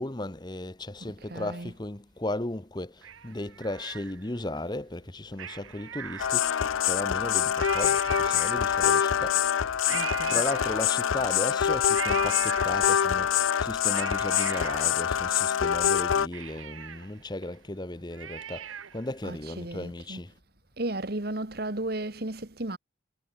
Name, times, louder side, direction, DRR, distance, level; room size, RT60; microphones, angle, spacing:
voice 1, 0.0-6.6 6.9-9.4 10.3-20.3, left 1 dB, 20° left, 0.9 m, -35 dB
voice 2, 1.2-1.8 8.1-8.2 9.9-10.8 19.2-20.2 20.8-22.8, right 2 dB, 50° right, 1.7 m, -35 dB
Cat, 3.0-4.5 5.3-6.7 7.2-7.3 7.5-9.0 9.9-11.2 11.9-13.2 13.6-15.7 16.0-16.1 16.3-19.1 19.5-19.6, right 8 dB, 90° right, 1.1 m, -40 dB
sound 1, 6.2-16.3, left 8 dB, 85° left, 0.5 m, -25 dB
head